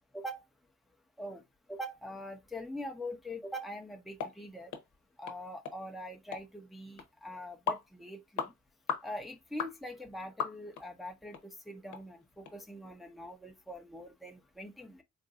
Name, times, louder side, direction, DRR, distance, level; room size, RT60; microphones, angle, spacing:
voice 1, 1.7-4.7 5.2-8.5 9.0-15.0, equal, ahead, 0.7 m, -43 dB
sound 1, 4.2-4.3 4.7-4.8 5.3-5.4 5.6-5.8 6.3-6.5 7.0-7.1 7.7-7.9 8.4-8.5 8.9-9.1 9.6-9.7 10.4-10.8 11.3-11.4 11.9-12.0 12.5-12.6, left 7 dB, 80° left, 0.8 m, -36 dB
4.0 x 2.5 x 2.4 m
cardioid pair, 110°, 29 cm